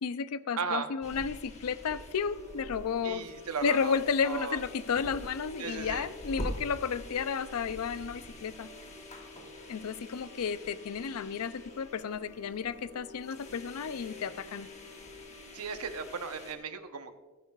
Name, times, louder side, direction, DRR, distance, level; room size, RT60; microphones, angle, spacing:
voice 1, 0.0-3.3 3.6-8.7 9.7-14.7, left 6 dB, 75° left, 15 dB, 0.5 m, -32 dB
voice 2, 0.6-0.9 3.0-3.9 4.2-4.6 5.6-6.1 15.5-17.1, right 5 dB, 75° right, 8 dB, 0.9 m, -36 dB
sound 1, 1.0-16.5, left 1 dB, 30° left, 1.4 m, -46 dB
sound 2, 2.1-16.5, left 2 dB, 55° right, 1.6 m, -53 dB
14.5 x 14.0 x 2.4 m, 1.3 s
head